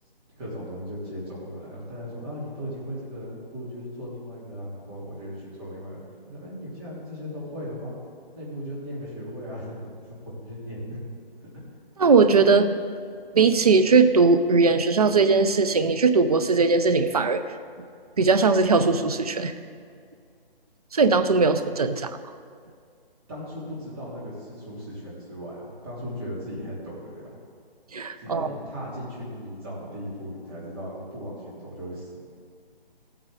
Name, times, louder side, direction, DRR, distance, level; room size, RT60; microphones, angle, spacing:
voice 1, 0.4-6.0 6.3-8.0 8.3-11.0 11.4-11.5 23.3-27.4 28.2-32.2, equal, 25° right, -7 dB, 3.2 m, -37 dB
voice 2, 12.0-12.8 13.3-17.4 18.2-19.5 20.9-22.1 27.9-28.5, right 4 dB, 40° right, 10 dB, 0.5 m, -19 dB
15.5 x 9.1 x 3.7 m, 2.2 s
hypercardioid pair, 170°, 30 cm